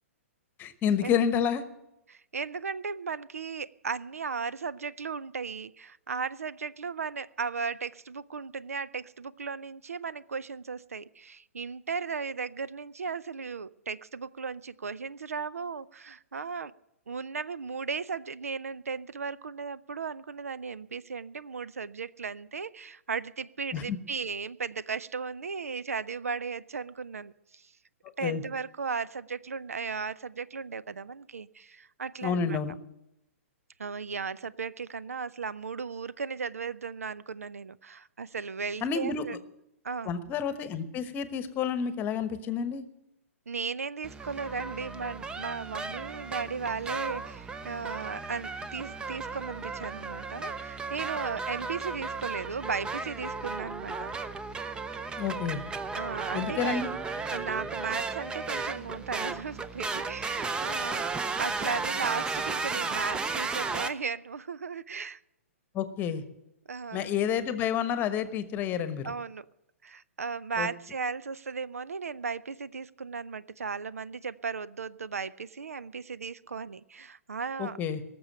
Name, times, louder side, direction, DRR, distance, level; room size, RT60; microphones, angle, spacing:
voice 1, 0.6-1.6 23.7-24.0 28.2-28.4 32.2-32.7 38.8-39.2 40.0-42.8 55.2-55.6 56.3-56.9 65.7-66.2 66.9-69.1 70.6-70.7 77.6-78.0, left 7 dB, 25° left, 11 dB, 1.1 m, -29 dB
voice 2, 2.1-16.7 17.1-27.7 28.2-32.6 33.8-39.4 39.8-40.1 43.5-54.3 56.0-56.8 57.3-61.1 61.4-65.2 66.7-67.1 69.0-69.4 69.8-77.8, right 5 dB, 80° right, 19 dB, 0.5 m, -36 dB
sound 1, 44.0-63.9, right 4 dB, 10° right, 0.6 m, -34 dB
18.0 x 7.0 x 8.8 m, 0.87 s
figure-of-eight pair, 120°, 8 cm